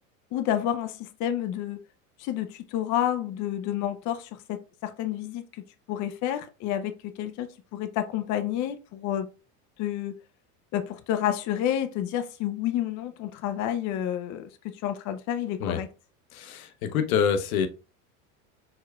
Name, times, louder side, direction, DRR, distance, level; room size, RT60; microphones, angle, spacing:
voice 1, 0.3-1.8 2.2-5.6 5.9-9.3 9.8-10.2 10.7-14.5 14.8-15.9, left 11 dB, 45° left, 0.6 m, -29 dB
voice 2, 16.3-17.7, left 7 dB, 80° left, 0.8 m, -26 dB
4.5 x 3.7 x 2.2 m
hypercardioid pair, 95°, 42 cm